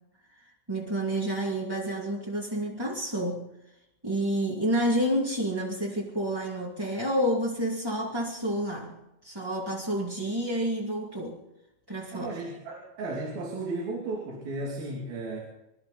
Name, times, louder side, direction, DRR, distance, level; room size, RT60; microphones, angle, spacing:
voice 1, 0.7-3.4 4.0-9.0 9.2-11.4 11.9-12.3, equal, 10° right, -4 dB, 1.5 m, -29 dB
voice 2, 12.1-15.4, right 2 dB, 75° right, -2 dB, 4.7 m, -34 dB
27.0 x 13.0 x 4.1 m, 0.91 s
omnidirectional pair, 4.3 m